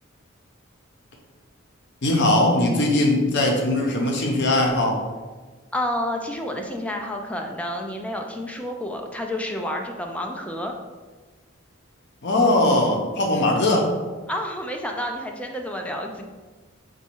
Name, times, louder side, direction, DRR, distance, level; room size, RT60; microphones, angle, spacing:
voice 1, 2.0-5.0 12.2-13.9, left 1 dB, 60° left, 1 dB, 0.7 m, -20 dB
voice 2, 5.7-10.7 14.3-16.2, left 1 dB, 5° left, 2 dB, 0.4 m, -29 dB
4.0 x 2.3 x 4.4 m, 1.3 s
head